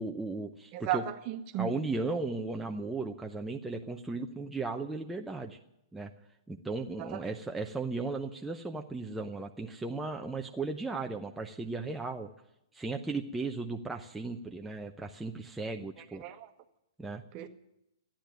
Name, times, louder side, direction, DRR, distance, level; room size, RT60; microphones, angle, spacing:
voice 1, 0.0-1.0 1.5-5.6 5.9-6.1 6.5-12.3 12.7-16.2 17.0-17.2, right 3 dB, 5° right, 0.8 m, -36 dB
voice 2, 0.7-1.8 7.0-7.2 16.2-16.5 17.3-17.5, right 11 dB, 35° right, 1.3 m, -34 dB
13.5 x 10.0 x 9.2 m
figure-of-eight pair, 115°, 2 cm